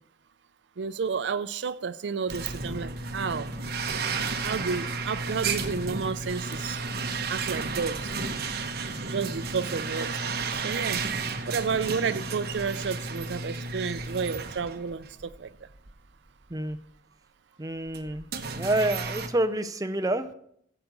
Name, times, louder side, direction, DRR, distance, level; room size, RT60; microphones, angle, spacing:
voice 1, 0.8-3.5 4.4-6.8 7.3-8.1 9.1-11.0 11.5-15.7, right 5 dB, 70° right, 0.5 m, -31 dB
sound 1, 2.3-15.4 15.7-15.9 16.7-16.8 17.9-19.3, right 4 dB, 55° right, 1.0 m, -32 dB
voice 2, 17.6-18.3 18.5-20.3, right 1 dB, 20° right, 0.6 m, -28 dB
12.5 x 8.1 x 5.2 m
head